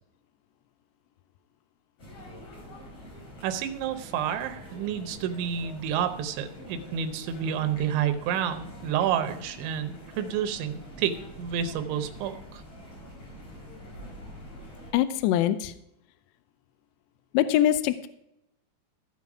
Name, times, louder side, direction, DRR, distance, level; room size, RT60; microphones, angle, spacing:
sound 1, 2.0-14.9, equal, 35° left, 5.8 m, -45 dB
voice 1, 3.4-12.6, right 9 dB, 85° right, 8 dB, 3.2 m, -29 dB
voice 2, 14.9-15.7 17.3-18.1, left 12 dB, 85° left, 11 dB, 2.6 m, -23 dB
15.0 x 5.8 x 4.8 m, 0.83 s
omnidirectional pair, 5.2 m